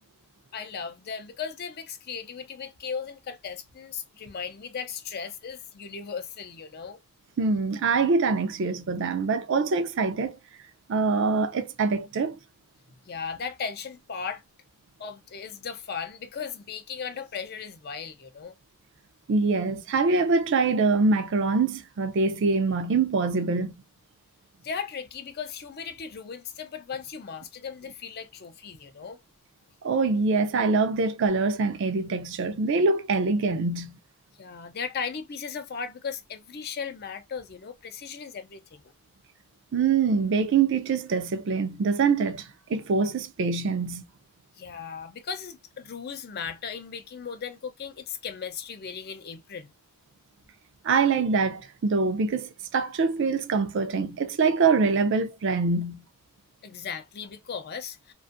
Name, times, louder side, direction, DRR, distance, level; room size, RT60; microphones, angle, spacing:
voice 1, 0.5-7.0 13.1-14.4 15.0-18.6 24.6-29.2 34.4-38.8 44.6-49.7 56.6-58.1, left 6 dB, 45° left, 0.5 m, -37 dB
voice 2, 7.4-10.4 10.9-12.4 19.3-23.7 29.8-34.0 39.7-44.0 50.8-56.0, right 4 dB, 55° right, 0.4 m, -24 dB
2.5 x 2.3 x 2.5 m
head